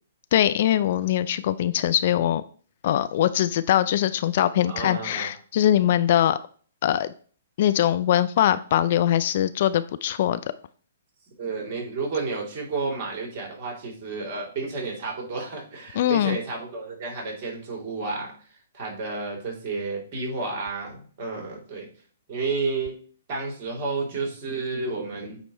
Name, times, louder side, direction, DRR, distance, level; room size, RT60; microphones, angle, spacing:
voice 1, 0.3-2.4 2.8-6.4 6.8-7.1 7.6-10.4 16.0-16.4, left 11 dB, 55° left, 13 dB, 0.4 m, -22 dB
voice 2, 4.7-5.3 11.4-18.3 18.7-21.9 22.3-23.0 23.3-25.4, right 4 dB, 40° right, 0 dB, 3.0 m, -31 dB
8.6 x 3.0 x 4.2 m, 0.44 s
hypercardioid pair, 130°, 0 cm